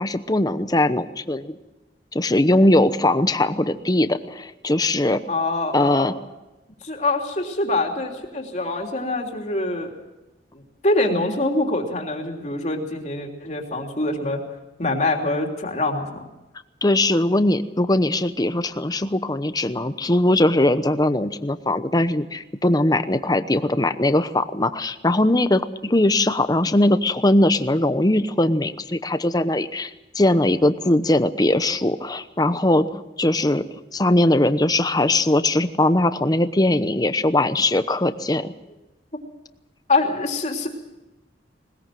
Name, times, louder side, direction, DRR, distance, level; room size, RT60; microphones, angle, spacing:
voice 1, 0.0-1.5 2.1-5.2 5.7-6.1 16.8-33.6 33.9-38.5, left 1 dB, 20° left, 11 dB, 0.9 m, -20 dB
voice 2, 5.3-6.1 6.8-9.9 10.5-14.4 14.8-16.1 39.9-40.7, left 2 dB, 40° left, 2 dB, 3.2 m, -24 dB
20.5 x 20.5 x 7.7 m, 1.0 s
head